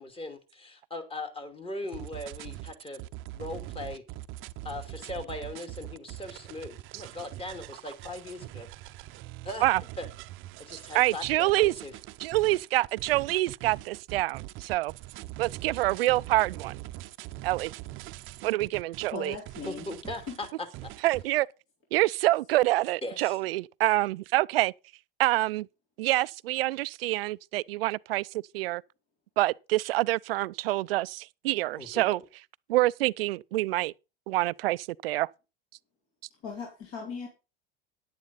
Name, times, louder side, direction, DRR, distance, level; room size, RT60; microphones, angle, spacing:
voice 1, 0.0-3.0 3.3-4.0 4.6-8.7 9.4-9.7 10.0-10.1 10.6-11.9 19.6-20.5 23.0-23.4 31.8-32.0, left 2 dB, 20° left, 2.5 m, -39 dB
sound 1, 1.9-21.2, right 16 dB, 45° right, 0.7 m, -43 dB
voice 2, 10.9-11.7 12.2-14.9 15.4-16.8 17.4-17.7 18.4-19.4 21.0-21.5 21.9-24.7 25.2-25.7 26.0-28.8 29.4-32.2 32.7-33.9 34.3-35.3, right 18 dB, 80° right, 0.4 m, -26 dB
voice 3, 19.1-19.9 20.3-20.4 36.4-37.3, left 5 dB, 50° left, 4.1 m, -38 dB
10.5 x 9.9 x 4.1 m
hypercardioid pair, 95°, 29 cm